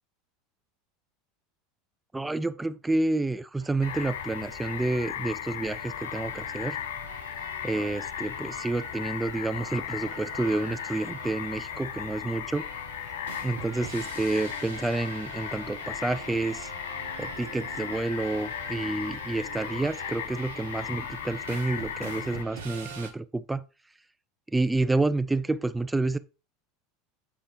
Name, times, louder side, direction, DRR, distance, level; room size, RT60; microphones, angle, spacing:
voice 1, 2.1-6.8 7.6-12.7 13.4-16.7 17.2-23.6 24.5-26.2, right 2 dB, 10° right, 0.4 m, -29 dB
sound 1, 3.6-23.1, right 4 dB, 70° right, 1.1 m, -44 dB
sound 2, 3.8-22.4, left 11 dB, 65° left, 0.4 m, -37 dB
sound 3, 9.6-14.0, right 3 dB, 35° right, 3.0 m, -55 dB
7.9 x 4.9 x 3.0 m
figure-of-eight pair, 75°, 0 cm